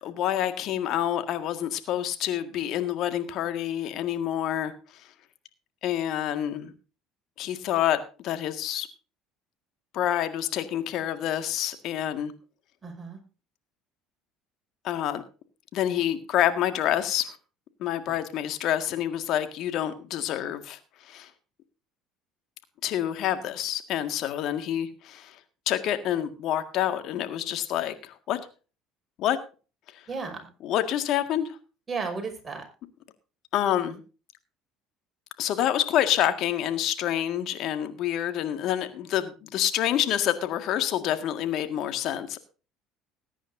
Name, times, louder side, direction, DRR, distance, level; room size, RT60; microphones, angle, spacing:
voice 1, 0.0-4.7 5.8-6.7 7.4-8.9 9.9-12.3 14.8-15.2 15.7-17.4 17.8-21.3 22.8-25.4 25.7-28.4 29.2-29.4 30.6-31.6 33.5-34.0 35.4-42.4, left 11 dB, 60° left, 9 dB, 1.9 m, -27 dB
voice 2, 12.8-13.2 18.1-18.2 30.1-30.5 31.9-32.6, right 4 dB, 25° right, 3 dB, 5.5 m, -34 dB
20.5 x 9.9 x 2.7 m, 0.34 s
hypercardioid pair, 75°, 0 cm